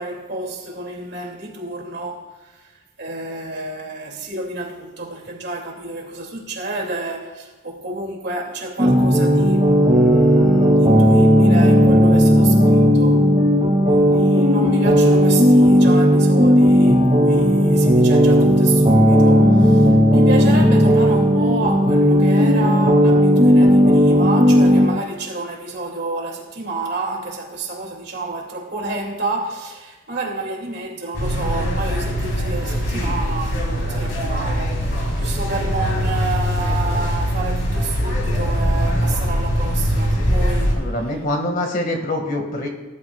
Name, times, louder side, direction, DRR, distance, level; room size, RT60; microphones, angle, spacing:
voice 1, 0.0-2.7 3.0-13.2 13.9-34.8 35.2-40.9, right 2 dB, 55° right, 2.7 m, -29 dB
sound 1, 8.8-24.9, equal, 30° right, 2.3 m, -14 dB
sound 2, 31.1-40.7, equal, 80° left, 3.4 m, -22 dB
voice 2, 40.7-42.7, left 1 dB, 45° left, 1.9 m, -24 dB
19.5 x 11.5 x 2.4 m
head